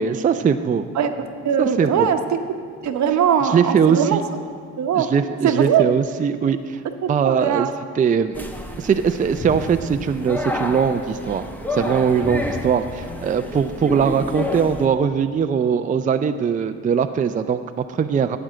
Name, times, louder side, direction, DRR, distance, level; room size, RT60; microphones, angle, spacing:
voice 1, 0.0-0.9 1.6-2.1 3.4-4.2 5.0-6.8 7.1-7.7 8.0-8.4 8.8-18.4, right 7 dB, 25° right, 8 dB, 0.4 m, -21 dB
voice 2, 0.9-2.4 2.8-4.2 4.8-5.1 5.4-5.8 7.0-7.7, right 8 dB, 65° right, 7 dB, 0.9 m, -20 dB
sound 1, 8.3-14.9, left 1 dB, 5° left, 1.0 m, -30 dB
8.7 x 7.9 x 7.5 m, 2.1 s
cardioid pair, 90°, 30 cm